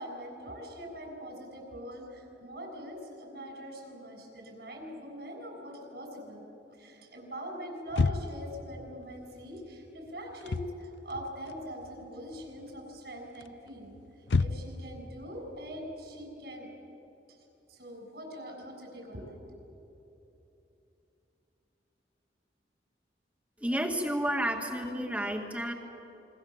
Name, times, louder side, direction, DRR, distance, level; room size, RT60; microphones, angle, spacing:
voice 1, 0.0-6.4 6.7-14.0 14.4-16.7 17.7-19.6, equal, 65° right, 2 dB, 6.8 m, -43 dB
sound 1, 7.9-8.5 10.3-10.8 11.1-12.0 12.3-12.8 13.4-14.9, left 4 dB, 85° left, 0.5 m, -30 dB
voice 2, 23.6-25.7, right 1 dB, 10° right, 2 dB, 2.1 m, -31 dB
27.0 x 23.5 x 7.4 m, 3.0 s
head